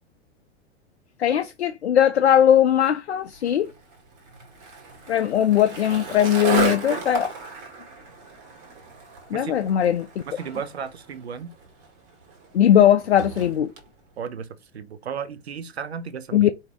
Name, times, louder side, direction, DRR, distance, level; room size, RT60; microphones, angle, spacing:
voice 1, 1.2-3.7 5.1-7.3 9.3-10.1 12.5-13.7 16.3-16.5, left 10 dB, 70° left, 0.5 m, -19 dB
Skateboard, 3.3-13.9, right 5 dB, 40° right, 1.7 m, -34 dB
voice 2, 10.3-11.5 14.2-14.5 14.7-16.5, right 7 dB, 70° right, 0.7 m, -34 dB
4.5 x 2.8 x 3.5 m
figure-of-eight pair, 95°, 33 cm